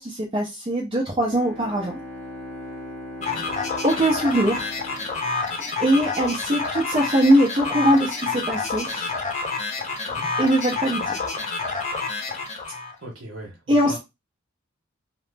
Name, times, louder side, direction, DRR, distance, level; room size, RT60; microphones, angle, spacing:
voice 1, 0.0-2.0 3.8-4.7 5.8-9.1 10.4-11.3 13.7-14.0, right 1 dB, 25° right, 0.5 m, -21 dB
Bowed string instrument, 1.2-6.4, left 1 dB, 10° left, 1.0 m, -39 dB
sound 1, 3.2-12.9, left 4 dB, 35° left, 0.7 m, -28 dB
voice 2, 13.0-14.0, right 1 dB, 70° right, 0.8 m, -38 dB
2.9 x 2.0 x 3.3 m
head